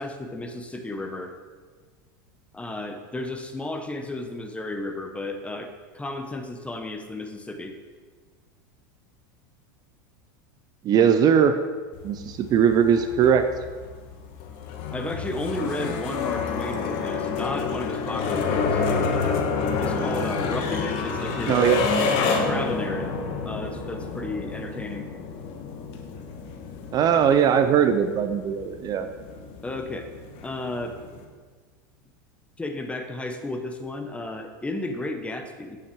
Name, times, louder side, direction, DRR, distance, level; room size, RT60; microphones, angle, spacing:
voice 1, 0.0-1.3 2.5-7.7 14.9-18.8 19.8-21.6 22.2-25.1 29.6-30.1 30.4-31.0 32.6-35.8, left 2 dB, 10° left, 6 dB, 1.0 m, -33 dB
voice 2, 10.8-11.6 12.0-13.4 21.5-21.9 26.9-29.1, right 8 dB, 35° right, 9 dB, 0.6 m, -20 dB
sound 1, 11.9-31.2, left 4 dB, 55° left, 1.3 m, -29 dB
8.9 x 7.2 x 4.7 m, 1.5 s
supercardioid pair, 115°, 11 cm